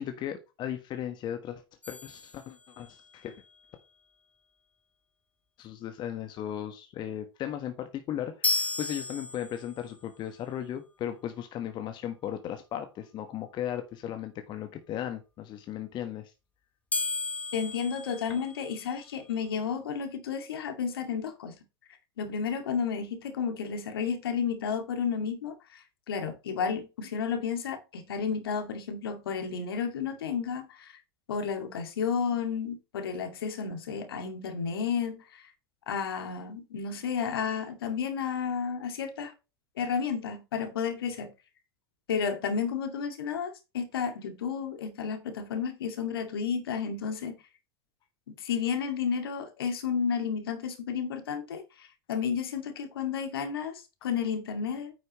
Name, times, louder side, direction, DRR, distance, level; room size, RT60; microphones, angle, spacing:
voice 1, 0.0-3.3 5.6-16.3, left 10 dB, 35° left, 1.3 m, -36 dB
sound 1, 1.8-3.1 8.4-9.9 16.9-19.0, left 3 dB, 10° left, 1.1 m, -34 dB
voice 2, 17.5-21.5 22.2-30.9 31.3-35.4 35.9-39.3 39.8-41.3 42.1-47.4 48.4-54.9, left 6 dB, 70° left, 2.0 m, -32 dB
9.3 x 6.4 x 3.1 m
hypercardioid pair, 90°, 13 cm